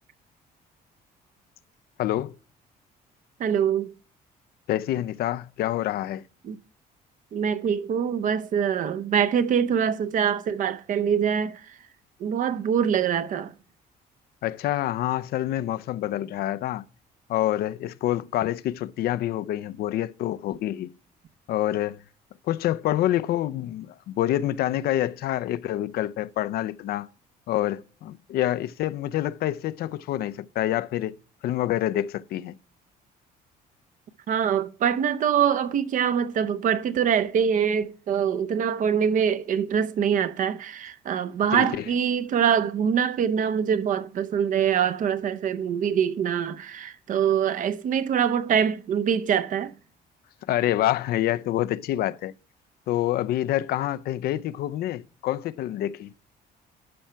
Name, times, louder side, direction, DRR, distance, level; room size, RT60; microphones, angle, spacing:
voice 1, 2.0-2.3 4.7-6.2 14.4-16.8 17.3-20.9 21.5-22.0 22.5-27.1 27.5-31.1 31.4-32.5 41.5-41.8 50.5-52.3 52.9-56.1, left 13 dB, 70° left, 0.5 m, -27 dB
voice 2, 3.4-3.9 6.4-6.6 7.3-11.6 12.2-13.5 34.3-49.7, right 8 dB, 50° right, 0.7 m, -24 dB
12.0 x 5.6 x 4.5 m
cardioid pair, 110°, 17 cm